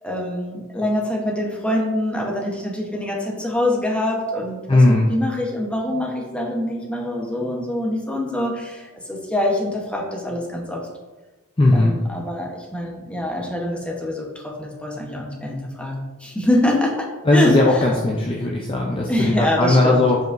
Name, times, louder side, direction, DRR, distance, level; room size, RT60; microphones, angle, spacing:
voice 1, 0.0-10.8 11.7-17.8 19.1-20.1, left 1 dB, 5° left, -2 dB, 0.9 m, -24 dB
voice 2, 4.7-5.1 11.6-11.9 17.2-20.2, left 2 dB, 25° left, -2 dB, 0.5 m, -17 dB
7.7 x 4.8 x 2.6 m, 1.2 s
head